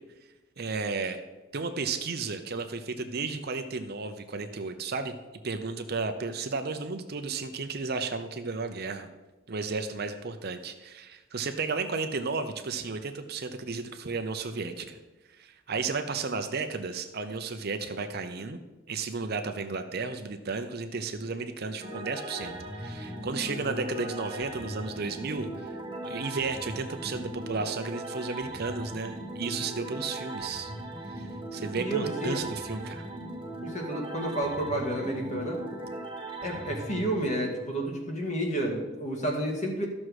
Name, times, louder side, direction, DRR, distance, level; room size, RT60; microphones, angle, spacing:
voice 1, 0.6-1.2 1.5-5.2 5.4-9.1 9.5-15.0 15.4-18.6 18.9-30.7 31.2-31.3 31.5-33.0, right 4 dB, 45° right, 8 dB, 0.6 m, -33 dB
sound 1, 21.8-37.9, right 1 dB, 20° right, 1.4 m, -39 dB
voice 2, 31.8-32.4 33.6-35.6 36.4-39.9, right 1 dB, 35° left, 0 dB, 1.9 m, -31 dB
13.0 x 6.3 x 4.8 m, 1.1 s
head